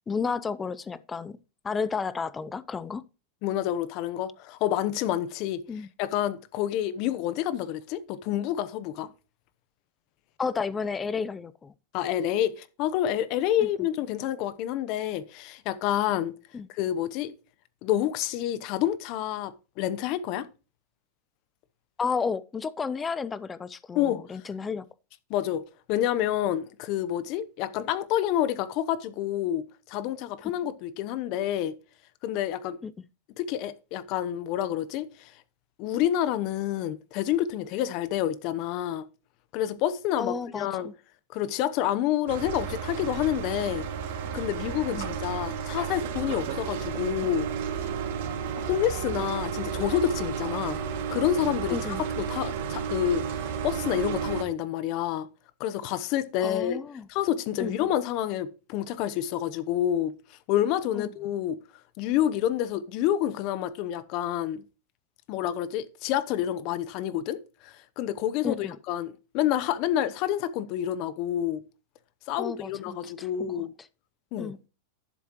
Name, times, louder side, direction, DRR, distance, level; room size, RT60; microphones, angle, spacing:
voice 1, 0.1-1.4 1.6-3.0 5.7-5.9 10.4-11.7 13.6-13.7 16.5-16.7 22.0-24.9 32.8-32.9 40.2-40.9 44.9-45.1 51.7-52.0 56.4-57.1 57.6-57.8 61.0-61.1 68.4-68.8 72.4-73.5 74.4-74.6, left 5 dB, 20° left, 0.6 m, -32 dB
voice 2, 3.4-5.6 6.0-9.1 11.9-16.4 16.7-17.3 17.8-20.5 23.9-24.2 25.3-25.6 25.9-31.7 32.2-32.8 33.4-35.3 35.8-39.0 39.5-40.9 41.3-43.9 44.3-47.5 48.6-50.8 51.1-55.3 55.6-56.8 57.1-61.6 62.0-64.6 65.3-71.6 72.3-73.7 74.3-74.5, left 11 dB, 50° left, 0.9 m, -28 dB
sound 1, 42.3-54.4, right 7 dB, 70° right, 2.4 m, -32 dB
11.0 x 7.3 x 3.0 m
hypercardioid pair, 120°, 0 cm